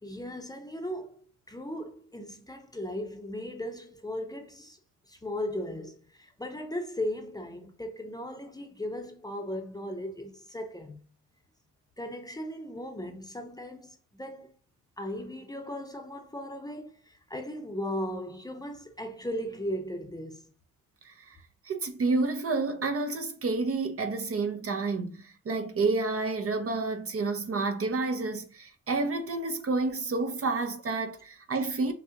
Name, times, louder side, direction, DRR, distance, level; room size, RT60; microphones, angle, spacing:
voice 1, 0.0-1.2 1.5-4.8 5.1-11.0 12.0-14.5 15.0-20.4, left 1 dB, 10° left, 0.8 m, -37 dB
voice 2, 21.7-31.9, right 3 dB, 40° right, 0.8 m, -29 dB
6.2 x 2.4 x 2.9 m
cardioid pair, 95°, 37 cm